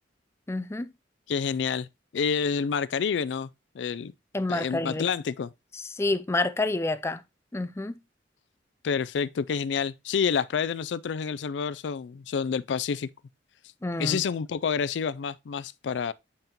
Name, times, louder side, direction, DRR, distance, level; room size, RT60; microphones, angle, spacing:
voice 1, 0.5-0.9 4.3-5.1 5.7-7.2 7.5-8.0 13.8-14.2, left 2 dB, 15° left, 0.4 m, -28 dB
voice 2, 1.3-1.9 2.1-3.5 3.7-4.1 4.5-5.5 8.8-13.1 14.0-16.1, left 6 dB, 80° left, 0.4 m, -28 dB
7.8 x 5.3 x 2.9 m
head